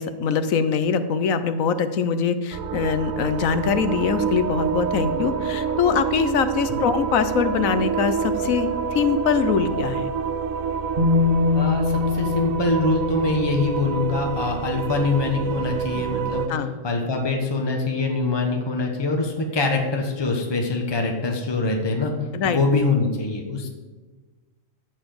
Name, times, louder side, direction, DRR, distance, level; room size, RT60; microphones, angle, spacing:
voice 1, 0.0-10.1 16.5-16.7 22.3-22.6, left 6 dB, 85° left, 11 dB, 1.2 m, -23 dB
sound 1, 2.5-16.5, right 6 dB, 90° right, 1.2 m, -27 dB
Bass guitar, 11.0-14.9 16.0-16.1, left 5 dB, 35° right, 1.8 m, -24 dB
voice 2, 11.5-16.4 16.8-22.1 22.5-23.7, left 3 dB, 20° left, 2 dB, 1.2 m, -24 dB
14.0 x 4.7 x 7.7 m, 1.3 s
omnidirectional pair, 1.4 m